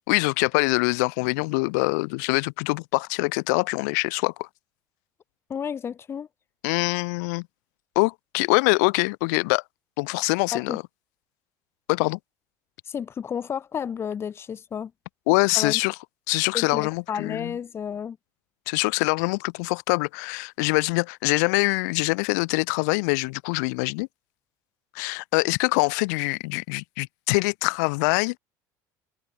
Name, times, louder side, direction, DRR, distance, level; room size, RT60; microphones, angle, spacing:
voice 1, 0.1-4.5 6.6-7.4 8.0-9.6 10.0-10.8 11.9-12.2 15.3-15.9 16.3-17.5 18.7-24.1 24.9-28.4, left 30 dB, 90° left, 0.8 m, -24 dB
voice 2, 5.5-6.3 10.5-10.8 12.9-14.9 15.5-15.8 16.5-18.2, left 7 dB, 30° left, 0.7 m, -32 dB
cardioid pair, 125°, 9 cm